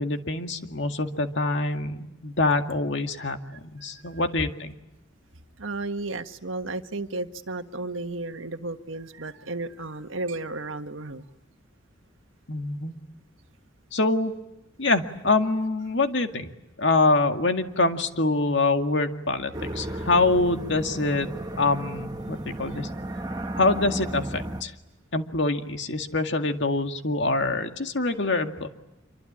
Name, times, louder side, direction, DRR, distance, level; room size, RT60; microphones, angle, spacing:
voice 1, 0.0-4.7 12.5-12.9 13.9-14.3 14.8-16.5 16.8-21.3 21.6-22.9 23.6-24.7 25.1-28.7, left 3 dB, 65° left, 2.1 m, -25 dB
voice 2, 5.6-11.2 23.1-23.2 23.4-23.6, right 2 dB, 85° right, 1.5 m, -33 dB
sound 1, 19.5-24.6, right 1 dB, 20° right, 1.7 m, -34 dB
27.5 x 24.0 x 8.8 m
head